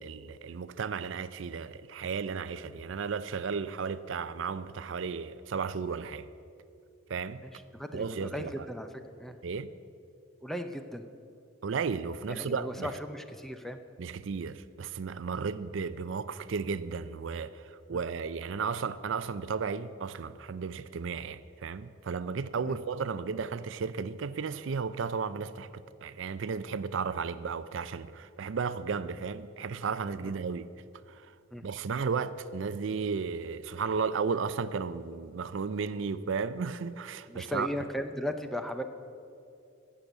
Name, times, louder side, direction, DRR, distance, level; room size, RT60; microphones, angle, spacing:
voice 1, 0.0-6.3 7.1-7.4 7.9-8.7 9.4-9.7 11.6-12.9 14.0-30.7 31.1-31.4 31.6-37.7, right 5 dB, 65° right, 0.4 m, -34 dB
voice 2, 7.4-8.9 9.2-9.4 10.4-11.1 12.3-13.8 17.9-18.0 22.6-22.8 30.2-30.3 31.5-31.7 37.3-38.8, equal, ahead, 0.5 m, -37 dB
15.0 x 6.9 x 8.0 m
head